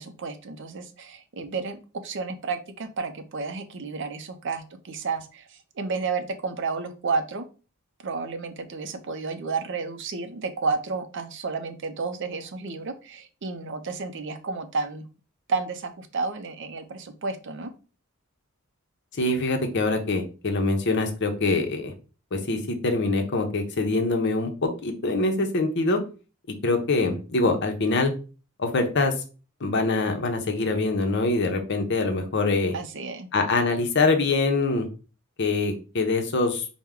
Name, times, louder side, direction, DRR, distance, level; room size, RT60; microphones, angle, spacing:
voice 1, 0.0-7.4 8.0-15.0 15.5-17.7 32.7-33.3, right 4 dB, 55° right, 8 dB, 0.5 m, -31 dB
voice 2, 19.2-21.9 22.3-26.0 26.6-28.1 28.6-29.1 29.6-32.7 33.3-34.9 35.4-36.7, left 3 dB, 55° left, 5 dB, 0.7 m, -24 dB
4.5 x 2.1 x 3.6 m, 0.35 s
head